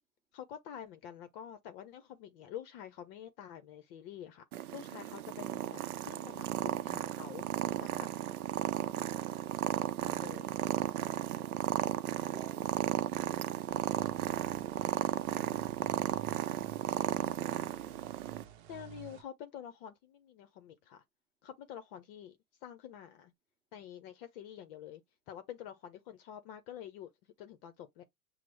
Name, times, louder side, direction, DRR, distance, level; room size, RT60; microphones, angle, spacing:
voice 1, 0.3-7.5 7.8-8.1 10.0-10.5 18.7-21.0 21.4-23.3 23.7-25.0 25.3-27.1 27.4-28.0, left 10 dB, 40° left, 0.6 m, -48 dB
Purr, 4.5-18.4, right 12 dB, 85° right, 0.5 m, -35 dB
voice 2, 10.8-11.7 12.0-13.0, right 4 dB, 5° right, 1.3 m, -57 dB
sound 1, 13.7-19.2, right 11 dB, 50° right, 0.8 m, -51 dB
5.9 x 2.0 x 3.2 m
hypercardioid pair, 120°, 43 cm